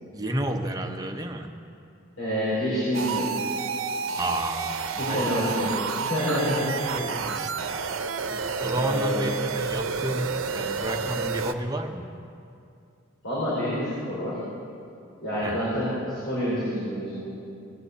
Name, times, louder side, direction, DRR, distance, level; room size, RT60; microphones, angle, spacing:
voice 1, 0.1-1.5 4.1-5.5 6.9-7.5 8.3-12.1 15.4-15.7, right 1 dB, 20° right, 4 dB, 0.9 m, -31 dB
voice 2, 2.2-3.5 5.0-5.7 6.0-6.7 8.7-9.2 13.2-14.4 15.2-17.2, equal, 75° left, -9 dB, 4.8 m, -27 dB
sound 1, 2.9-11.5, right 5 dB, 80° right, 0.8 m, -30 dB
19.0 x 7.7 x 8.1 m, 2.5 s
head